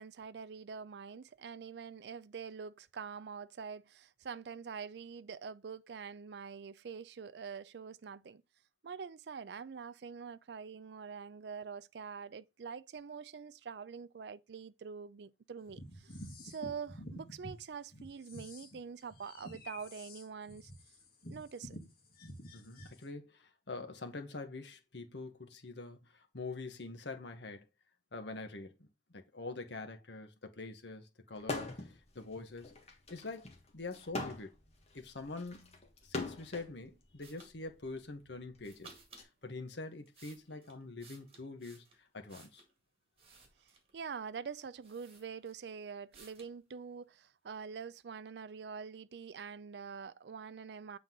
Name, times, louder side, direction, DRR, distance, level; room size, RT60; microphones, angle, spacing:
voice 1, 0.0-8.4 8.8-20.7 21.3-21.8 43.9-51.0, right 6 dB, 65° right, 0.4 m, -45 dB
sound 1, 15.7-17.6 17.9-23.0, left 1 dB, 55° left, 2.0 m, -49 dB
voice 2, 22.5-27.6 28.1-28.9 29.1-31.7 32.1-32.7 33.1-33.5 33.7-34.5 34.9-39.0 39.4-42.6, left 3 dB, 70° left, 1.2 m, -45 dB
sound 2, 31.4-32.0 32.3-36.7 37.6-39.2, left 3 dB, 35° left, 1.4 m, -42 dB
sound 3, 37.2-37.5 38.6-39.3 39.9-42.7 43.2-44.0 44.5-44.6 44.8-45.7 46.1-46.5, right 4 dB, 30° right, 1.9 m, -58 dB
7.6 x 3.8 x 3.7 m
head